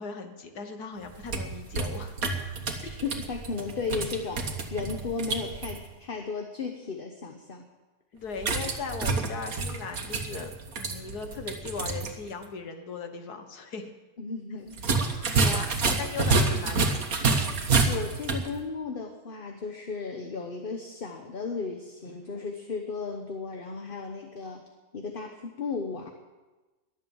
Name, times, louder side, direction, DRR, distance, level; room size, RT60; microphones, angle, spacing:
voice 1, 0.0-2.1 8.1-13.9 15.0-17.0, left 4 dB, 90° left, 6 dB, 2.0 m, -38 dB
sound 1, 1.0-5.8 8.4-12.1 12.4-12.5 14.7-18.5, right 4 dB, 65° right, 1.8 m, -28 dB
voice 2, 2.8-7.7 14.2-14.8 17.8-24.6 24.9-26.1, left 4 dB, 40° left, 4 dB, 1.2 m, -35 dB
22.0 x 7.8 x 7.2 m, 1.2 s
omnidirectional pair, 1.6 m